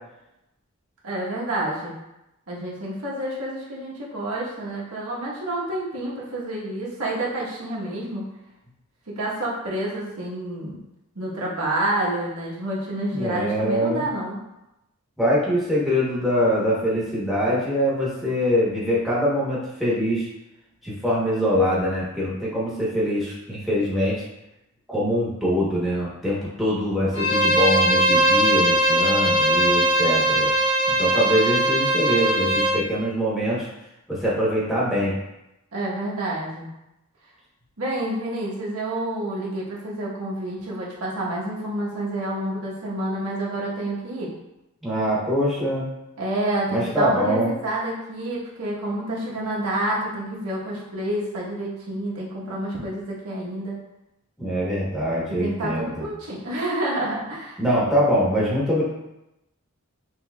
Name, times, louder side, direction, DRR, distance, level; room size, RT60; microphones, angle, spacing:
voice 1, 1.0-2.0 2.5-8.2 9.1-10.8 11.1-14.4 35.7-36.7 37.8-44.3 46.2-53.8 55.3-57.6, right 1 dB, 85° right, -5 dB, 1.1 m, -28 dB
voice 2, 13.1-14.0 15.2-20.3 20.8-24.2 24.9-30.5 30.9-33.7 34.1-35.1 44.8-45.9 46.7-47.5 54.4-56.1 57.6-58.8, equal, ahead, -7 dB, 1.0 m, -23 dB
Bowed string instrument, 27.1-32.8, right 1 dB, 25° left, 1.1 m, -20 dB
6.0 x 2.8 x 2.3 m, 0.92 s
head